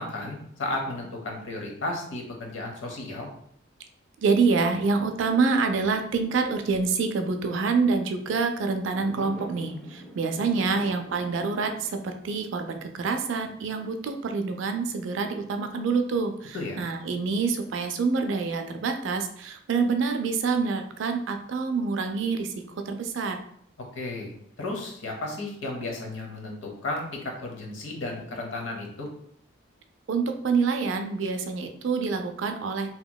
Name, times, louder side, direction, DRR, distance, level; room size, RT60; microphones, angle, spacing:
voice 1, 0.0-3.3 16.5-16.8 23.9-29.1, left 2 dB, 75° left, 1 dB, 0.8 m, -34 dB
voice 2, 4.2-22.5 22.9-23.4 30.1-32.9, right 4 dB, 65° right, 6 dB, 0.4 m, -26 dB
Fireworks, 8.8-14.0, equal, 10° left, 0.4 m, -45 dB
2.9 x 2.8 x 2.2 m, 0.69 s
head